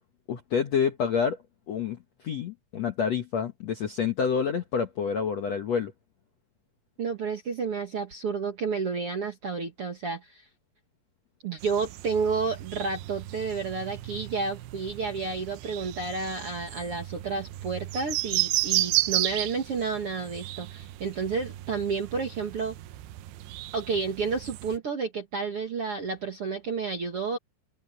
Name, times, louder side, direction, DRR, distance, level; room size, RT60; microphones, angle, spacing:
voice 1, 0.3-1.4 1.7-5.9, left 6 dB, 65° left, 1.7 m, -28 dB
voice 2, 7.0-10.4 11.4-22.7 23.7-27.4, right 5 dB, 50° right, 1.7 m, -31 dB
sound 1, 11.6-24.8, right 16 dB, 75° right, 2.6 m, -33 dB
open air
omnidirectional pair, 5.0 m